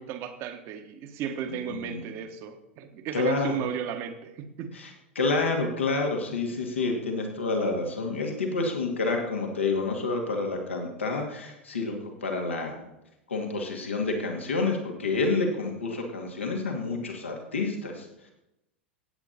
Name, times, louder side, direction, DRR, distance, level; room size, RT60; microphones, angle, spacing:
voice 1, 0.0-4.7, right 8 dB, 40° right, 8 dB, 1.4 m, -35 dB
voice 2, 1.5-2.0 3.1-3.6 4.7-4.9 5.1-12.9 13.3-18.3, left 3 dB, 80° left, 1 dB, 2.4 m, -29 dB
16.5 x 8.9 x 4.2 m, 0.90 s
figure-of-eight pair, 90°, 7 cm